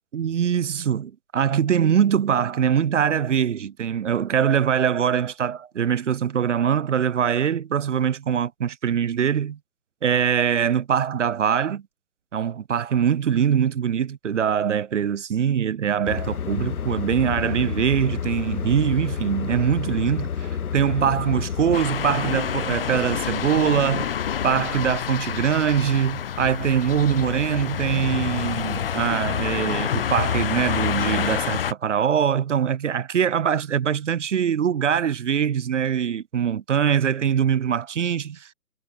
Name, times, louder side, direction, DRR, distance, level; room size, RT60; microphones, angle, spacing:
voice 1, 0.1-9.6 10.0-11.8 12.3-24.1 24.4-38.5, right 8 dB, 50° right, 0.5 m, -23 dB
sound 1, 16.0-21.8, left 7 dB, 60° left, 4.7 m, -29 dB
sound 2, 21.7-31.7, left 8 dB, 35° left, 0.9 m, -27 dB
hypercardioid pair, 160°, 49 cm